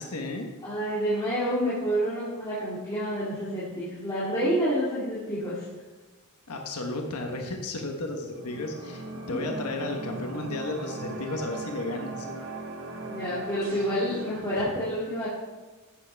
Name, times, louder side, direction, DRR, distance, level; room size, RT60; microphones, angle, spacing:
voice 1, 0.0-0.5 6.5-12.4, left 2 dB, 90° left, 2 dB, 1.2 m, -33 dB
voice 2, 0.6-5.6 9.3-9.4 13.0-15.3, equal, 20° left, -9 dB, 2.6 m, -28 dB
sound 1, 8.2-14.6, right 2 dB, 65° right, 1.8 m, -39 dB
12.5 x 8.2 x 3.5 m, 1.3 s
head